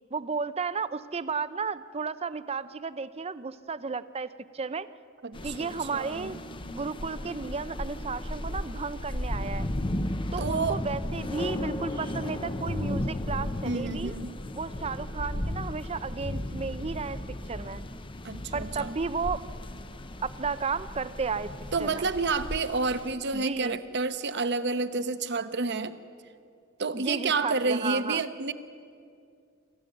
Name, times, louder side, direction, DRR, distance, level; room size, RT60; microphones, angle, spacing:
voice 1, 0.1-4.9 5.4-6.4 6.7-9.7 10.3-14.1 14.5-17.2 17.5-17.8 18.5-19.4 20.2-21.5 21.8-22.1 23.3-23.8 26.9-28.2, right 5 dB, 30° right, 14 dB, 0.6 m, -33 dB
voice 2, 5.2-6.3 10.4-10.8 13.6-14.3 18.2-18.9 21.7-26.0 26.8-28.5, right 4 dB, 55° right, 11 dB, 1.0 m, -29 dB
sound 1, 5.3-23.1, left 1 dB, 25° left, 0.8 m, -35 dB
26.5 x 14.5 x 9.3 m, 2.4 s
head